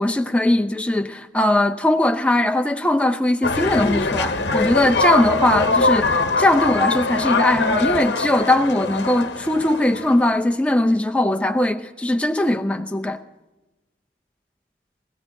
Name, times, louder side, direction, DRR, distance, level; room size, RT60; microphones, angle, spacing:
voice 1, 0.0-13.2, left 1 dB, 5° left, 0.5 m, -20 dB
sound 1, 3.4-10.3, left 3 dB, 80° left, 0.9 m, -22 dB
25.0 x 16.0 x 2.7 m
head